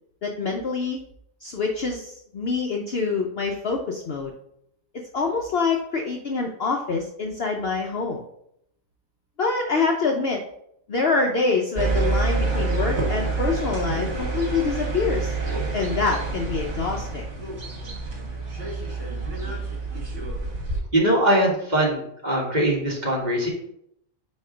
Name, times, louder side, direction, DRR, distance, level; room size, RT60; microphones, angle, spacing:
voice 1, 0.2-1.0 1.4-4.3 5.1-8.2 9.4-10.4 10.9-15.3 15.7-17.2, left 4 dB, 55° left, 1 dB, 0.8 m, -25 dB
sound 1, 11.8-20.8, right 3 dB, 55° right, 1.9 m, -27 dB
voice 2, 20.9-23.5, right 1 dB, 30° right, -3 dB, 1.6 m, -21 dB
4.7 x 4.2 x 5.0 m, 0.72 s
omnidirectional pair, 1.5 m